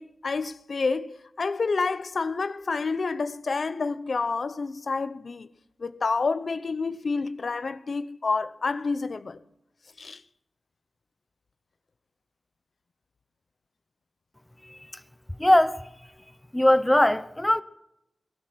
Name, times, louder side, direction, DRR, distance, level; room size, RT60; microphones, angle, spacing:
voice 1, 0.0-5.5 5.8-9.4 10.0-10.2, left 4 dB, 60° left, 0.6 m, -29 dB
voice 2, 15.4-15.9 16.5-17.6, left 1 dB, 10° left, 0.7 m, -20 dB
18.5 x 12.5 x 6.1 m
wide cardioid pair, 75°, 0 cm